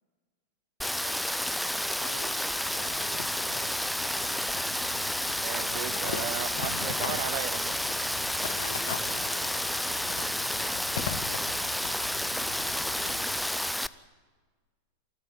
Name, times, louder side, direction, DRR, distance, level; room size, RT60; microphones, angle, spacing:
Rain, 0.8-13.9, left 1 dB, ahead, 0.6 m, -30 dB
voice 1, 0.9-1.3 1.6-5.9 8.5-12.0 12.6-13.2, right 2 dB, 75° right, 2 dB, 5.6 m, -51 dB
sound 1, 2.5-8.5, left 6 dB, 35° left, 4.2 m, -57 dB
sound 2, 2.6-13.4, left 9 dB, 60° left, 1.6 m, -41 dB
voice 2, 5.4-7.8, right 15 dB, 50° right, 16 dB, 1.1 m, -36 dB
27.5 x 14.0 x 9.7 m, 1.4 s
figure-of-eight pair, 90°, 0 cm